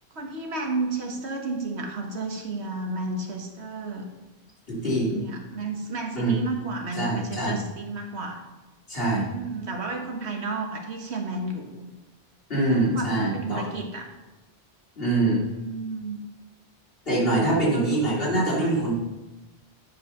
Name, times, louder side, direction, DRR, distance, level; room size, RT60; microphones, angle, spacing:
voice 1, 0.1-4.1 4.8-8.4 9.3-11.9 12.7-14.1 15.5-16.2 17.7-18.9, right 3 dB, 85° right, 2 dB, 1.6 m, -32 dB
voice 2, 4.7-5.2 6.2-6.3 7.0-7.6 8.9-9.3 12.5-13.7 15.0-15.5 17.1-18.9, right 2 dB, 60° left, -7 dB, 3.5 m, -24 dB
10.0 x 5.0 x 5.9 m, 1.1 s
omnidirectional pair, 1.1 m